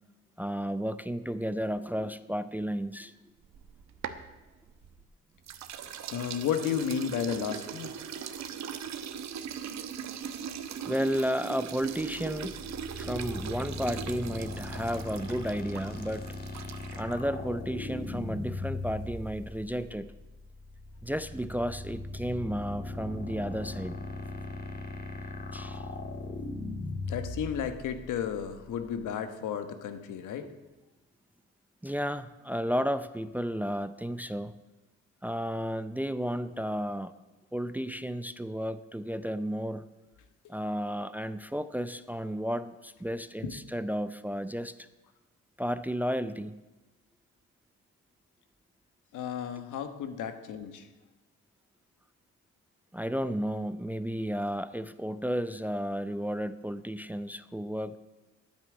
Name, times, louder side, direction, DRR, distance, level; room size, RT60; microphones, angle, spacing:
voice 1, 0.4-3.1 10.9-12.6 13.0-16.3 16.9-20.1 21.0-24.0 25.5-25.9 31.8-34.5 35.2-37.2 37.5-39.9 40.5-44.9 45.6-46.6 52.9-58.0, equal, 5° right, 13 dB, 0.5 m, -33 dB
sound 1, 3.4-5.0 5.5-17.2, right 8 dB, 65° right, 1.0 m, -40 dB
voice 2, 6.1-7.9 27.1-30.5 43.4-43.5 49.1-50.9, left 8 dB, 80° left, 9 dB, 1.3 m, -33 dB
sound 2, 11.9-29.0, left 2 dB, 30° left, 2.3 m, -39 dB
9.7 x 8.8 x 9.0 m, 1.1 s
cardioid pair, 90°, 30 cm